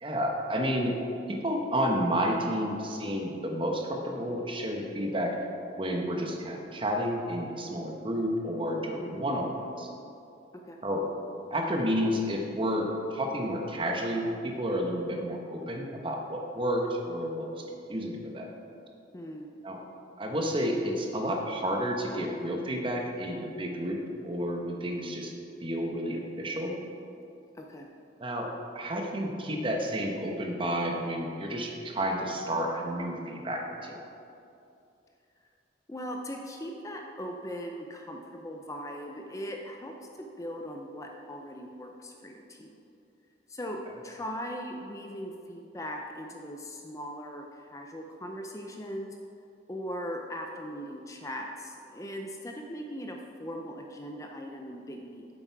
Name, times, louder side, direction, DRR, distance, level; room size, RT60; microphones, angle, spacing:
voice 1, 0.0-1.0 1.3-5.3 5.8-9.9 10.8-11.0 11.5-17.6 17.9-18.5 19.6-19.8 20.2-24.0 24.2-25.3 25.6-26.7 28.2-34.0, equal, 30° right, 1 dB, 1.0 m, -31 dB
voice 2, 9.0-9.3 10.5-10.8 19.1-19.5 27.5-27.9 35.9-42.7 43.5-49.2 49.7-55.3, equal, 20° left, 2 dB, 0.5 m, -39 dB
8.8 x 7.5 x 4.7 m, 2.6 s
head